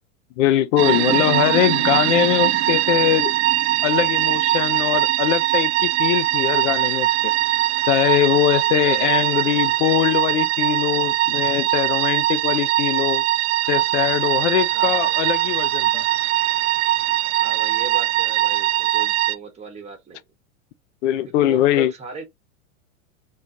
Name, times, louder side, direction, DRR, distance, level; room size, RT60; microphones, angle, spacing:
voice 1, 0.4-3.3 3.8-7.3 7.9-13.2 13.7-16.0 21.0-21.9, left 12 dB, 60° left, 0.6 m, -21 dB
sound 1, 0.8-19.4, right 15 dB, 55° right, 0.5 m, -21 dB
voice 2, 8.8-9.8 14.7-15.2 17.4-20.2 21.4-22.2, right 3 dB, 15° right, 1.1 m, -37 dB
3.7 x 2.5 x 2.7 m
hypercardioid pair, 115°, 40 cm